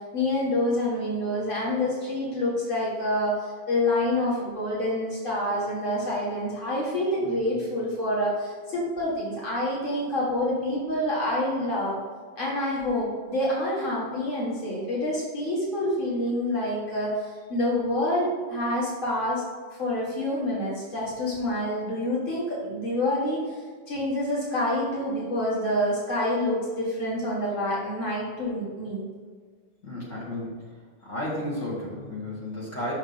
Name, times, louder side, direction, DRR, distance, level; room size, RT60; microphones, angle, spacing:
voice 1, 0.1-12.0 12.4-19.4 19.7-23.4 23.9-29.0, left 1 dB, 50° left, -6 dB, 2.0 m, -27 dB
voice 2, 29.8-30.6 31.0-32.9, left 1 dB, 85° left, -6 dB, 2.7 m, -33 dB
6.0 x 5.3 x 5.6 m, 1.5 s
omnidirectional pair, 1.2 m